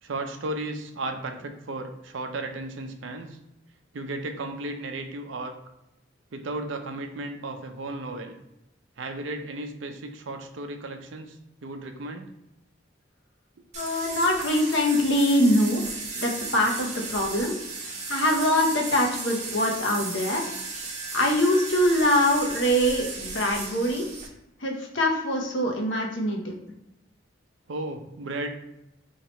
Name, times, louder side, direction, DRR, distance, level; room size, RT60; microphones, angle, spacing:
voice 1, 0.0-3.4 3.9-5.5 6.3-8.4 9.0-11.4 11.6-12.3 26.3-26.4 27.7-28.5, right 2 dB, 70° right, 5 dB, 0.5 m, -34 dB
voice 2, 13.7-15.9 16.2-17.5 17.8-20.4 21.1-24.0 24.6-26.5, left 1 dB, 65° left, 0 dB, 0.8 m, -23 dB
sound 1, 13.7-24.3, right 3 dB, 35° right, 0.8 m, -35 dB
2.9 x 2.9 x 4.2 m, 0.90 s
head